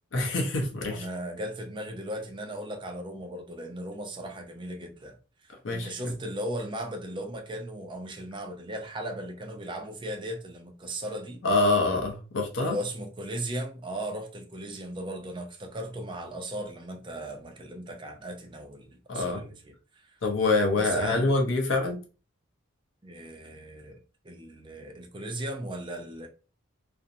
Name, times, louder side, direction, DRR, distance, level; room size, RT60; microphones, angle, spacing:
voice 1, 0.1-1.1 5.6-6.1 11.4-12.8 19.1-19.4 20.2-22.0, left 2 dB, 65° left, 0.6 m, -26 dB
voice 2, 0.9-5.2 5.4-11.4 12.6-20.2 20.7-21.2 23.0-24.0 24.2-26.3, right 1 dB, 25° right, 0.5 m, -37 dB
2.5 x 2.0 x 2.6 m
head